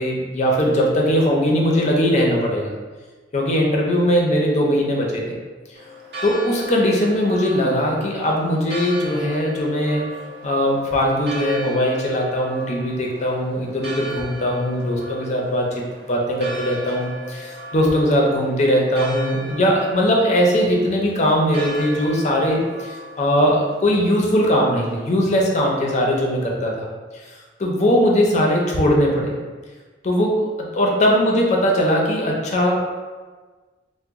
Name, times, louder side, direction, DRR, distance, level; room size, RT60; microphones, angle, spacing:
voice 1, 0.0-2.7 3.3-5.3 6.2-10.0 10.4-26.9 27.1-29.3 30.0-30.5 30.7-32.8, equal, 40° left, -1 dB, 0.5 m, -20 dB
Church bell, 5.7-25.2, equal, 65° right, 0.8 m, -37 dB
2.9 x 2.1 x 3.5 m, 1.4 s
head